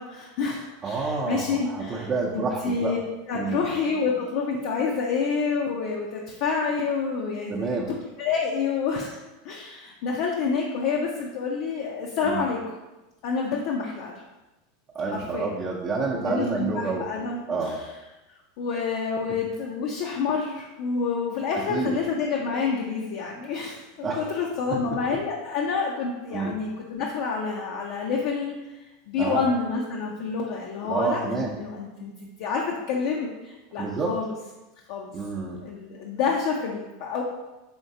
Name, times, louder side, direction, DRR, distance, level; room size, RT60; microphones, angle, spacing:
voice 1, 0.0-3.0 3.3-12.8 13.2-14.2 15.1-15.5 16.2-17.9 18.6-34.3 34.9-35.1 35.6-37.2, left 5 dB, 60° left, -2 dB, 0.5 m, -28 dB
voice 2, 0.8-2.9 3.4-3.6 7.5-7.9 12.2-12.4 14.9-17.1 17.5-17.8 21.5-22.0 24.0-24.3 24.7-24.8 26.3-26.5 29.2-29.4 30.8-31.5 33.8-34.2 35.1-35.6, right 4 dB, 30° right, -4 dB, 0.6 m, -28 dB
4.4 x 3.1 x 2.7 m, 1.1 s
hypercardioid pair, 95°, 0 cm